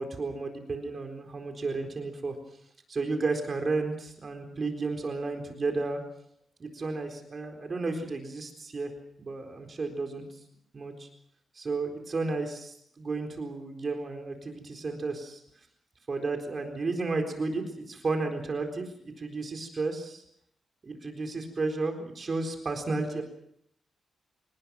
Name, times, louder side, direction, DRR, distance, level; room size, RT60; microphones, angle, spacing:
voice 1, 0.0-2.4 2.9-6.0 6.6-8.9 9.2-10.2 10.7-11.1 11.5-15.4 16.1-20.2 20.8-23.2, right 3 dB, 35° right, 4 dB, 4.2 m, -32 dB
26.0 x 19.5 x 6.3 m, 0.70 s
wide cardioid pair, 150°, 0 cm